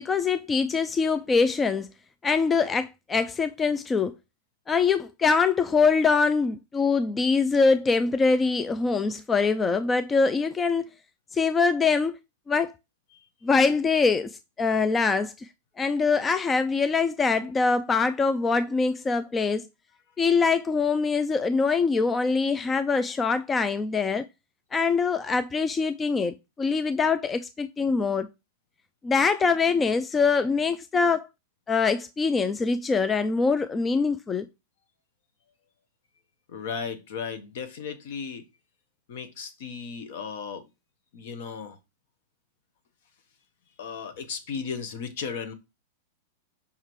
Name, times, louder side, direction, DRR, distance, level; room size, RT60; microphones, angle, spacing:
voice 1, 0.0-1.9 2.2-4.1 4.7-10.8 11.3-12.1 12.5-12.7 13.4-14.3 14.6-15.5 15.8-19.6 20.2-24.2 24.7-28.3 29.0-31.3 31.7-34.5, left 4 dB, 15° left, 0.3 m, -23 dB
voice 2, 36.5-38.4 39.1-40.7 41.1-41.8 43.8-45.5, left 6 dB, 60° left, 1.2 m, -35 dB
5.6 x 3.7 x 4.7 m
supercardioid pair, 155°, 0 cm